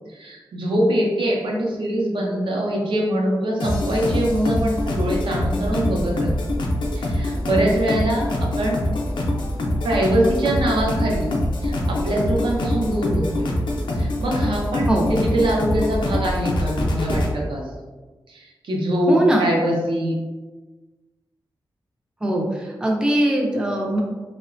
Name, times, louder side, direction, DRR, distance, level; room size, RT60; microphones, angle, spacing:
voice 1, 0.1-6.3 6.9-8.8 9.8-11.3 11.6-13.5 14.0-17.6 18.3-20.1, right 1 dB, 85° right, -2 dB, 0.6 m, -23 dB
sound 1, 3.6-17.3, left 1 dB, 80° left, 0.4 m, -24 dB
voice 2, 19.1-19.5 22.2-24.0, right 1 dB, 10° right, -1 dB, 0.3 m, -21 dB
2.8 x 2.1 x 2.5 m, 1.3 s
wide cardioid pair, 170°, 8 cm